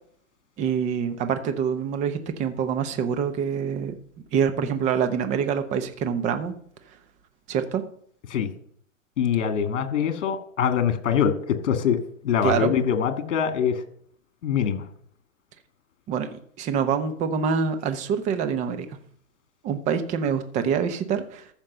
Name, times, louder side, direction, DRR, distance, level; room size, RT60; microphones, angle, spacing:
voice 1, 0.6-3.9 4.3-6.5 7.5-7.8 12.4-12.7 16.1-16.3 16.6-18.9 19.6-21.5, right 7 dB, 20° right, 9 dB, 0.8 m, -25 dB
voice 2, 9.2-12.0 12.2-13.8 14.4-14.9, left 8 dB, 60° left, 9 dB, 2.0 m, -23 dB
14.0 x 5.3 x 6.8 m, 0.62 s
hypercardioid pair, 140°, 40 cm